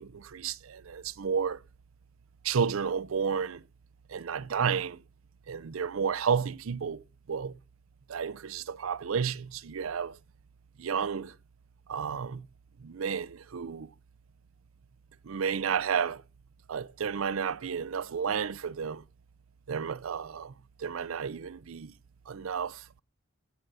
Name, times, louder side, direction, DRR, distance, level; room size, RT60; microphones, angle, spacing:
voice 1, 0.0-1.6 2.4-3.6 4.1-5.0 5.5-7.6 8.1-10.2 10.8-11.4 11.9-12.5 12.8-13.9 15.2-16.2 16.7-19.0 19.7-21.9 22.3-23.0, right 6 dB, 85° right, 0.5 m, -32 dB
16.5 x 6.7 x 6.2 m
head